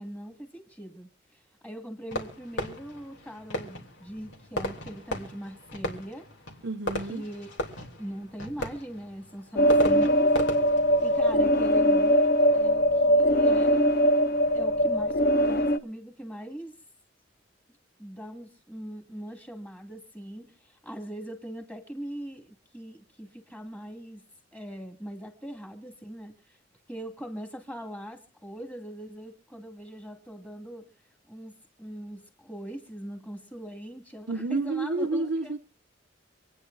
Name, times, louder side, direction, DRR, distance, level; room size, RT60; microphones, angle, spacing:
voice 1, 0.0-6.3 7.0-10.4 11.0-14.0 14.5-16.8 18.0-24.2 24.5-26.6 26.9-30.9 31.3-31.5 31.8-35.5, equal, 10° left, 2.6 m, -41 dB
Fireworks, 2.1-12.7, left 1 dB, 65° left, 3.2 m, -37 dB
voice 2, 6.6-7.2 34.3-35.6, right 3 dB, 60° right, 0.7 m, -29 dB
sound 1, 9.6-15.8, equal, 50° left, 0.7 m, -21 dB
27.5 x 9.9 x 2.7 m
head